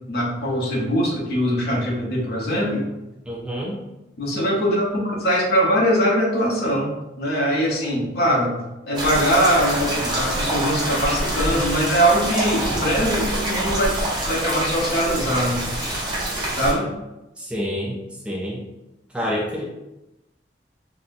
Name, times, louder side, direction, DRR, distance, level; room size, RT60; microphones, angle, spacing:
voice 1, 0.1-2.9 4.2-6.9 7.2-8.5 8.9-14.0 14.2-15.6 16.3-16.9, equal, 60° left, -3 dB, 0.8 m, -22 dB
voice 2, 3.3-3.7 17.4-18.0 18.3-18.6 19.1-19.6, equal, 5° right, -4 dB, 0.4 m, -27 dB
sound 1, 8.9-16.7, right 1 dB, 25° right, 0.8 m, -25 dB
4.0 x 2.1 x 2.5 m, 0.96 s
head